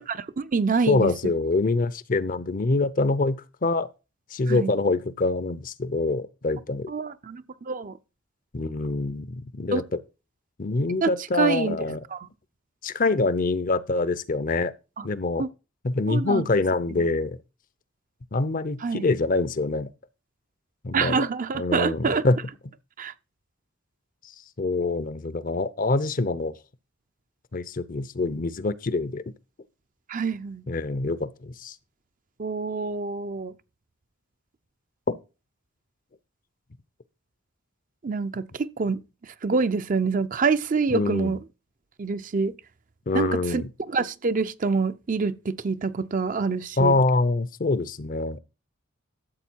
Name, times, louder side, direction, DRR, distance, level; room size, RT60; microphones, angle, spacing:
voice 1, 0.0-1.1 4.5-4.7 6.9-8.0 9.7-9.8 11.0-11.1 11.4-11.8 12.1-12.2 15.0-15.1 15.4-15.5 16.1-16.4 18.8-19.1 20.9-22.2 23.0-23.1 30.1-30.6 32.4-33.5 38.0-39.0 39.4-41.4 42.0-42.6 43.1-43.6 43.9-47.0, right 4 dB, 40° right, 0.5 m, -26 dB
voice 2, 0.9-3.9 4.3-6.9 8.5-9.8 10.6-12.0 12.8-14.7 15.0-15.5 15.8-17.4 18.3-19.9 20.8-21.3 21.5-22.4 24.6-26.5 27.5-29.2 30.7-31.7 35.1-35.2 40.9-41.3 43.1-43.7 46.8-48.4, left 3 dB, 40° left, 0.6 m, -25 dB
12.5 x 7.6 x 4.5 m
head